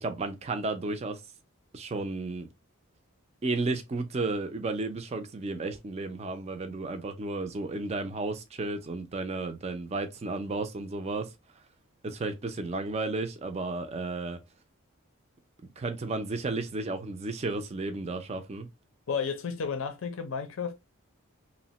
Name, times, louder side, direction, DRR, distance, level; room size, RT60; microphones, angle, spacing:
voice 1, 0.0-1.2 1.7-2.5 3.4-11.3 12.0-14.4 15.8-18.7, right 3 dB, 30° right, 0.4 m, -33 dB
voice 2, 19.1-20.7, left 6 dB, 65° left, 0.5 m, -32 dB
3.0 x 2.1 x 2.8 m
head